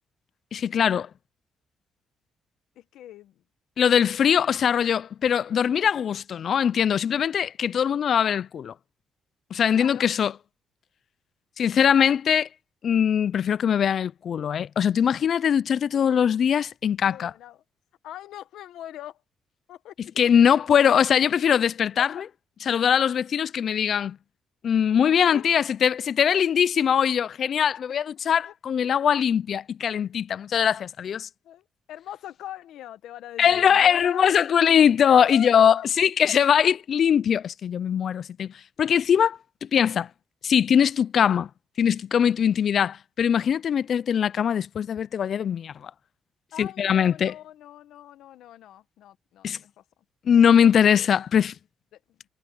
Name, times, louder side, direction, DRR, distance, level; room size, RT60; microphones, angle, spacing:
voice 1, 0.5-1.1 3.8-8.7 9.5-10.3 11.6-12.5 12.8-17.3 20.2-22.1 22.7-24.2 24.6-31.3 33.4-38.5 38.8-40.1 40.4-41.5 41.8-45.9 46.6-47.3 49.4-49.6 50.3-51.5, left 8 dB, 55° left, 0.4 m, -21 dB
voice 2, 2.8-3.4 9.7-10.1 12.0-12.2 15.9-16.2 17.0-17.6 18.0-19.2 19.7-20.3 22.0-22.1 25.2-25.5 28.4-28.5 31.0-31.1 31.4-34.3 35.0-35.9 46.5-49.8 50.8-51.1 51.9-52.2, left 12 dB, 80° left, 1.1 m, -41 dB
cardioid pair, 90°, 0 cm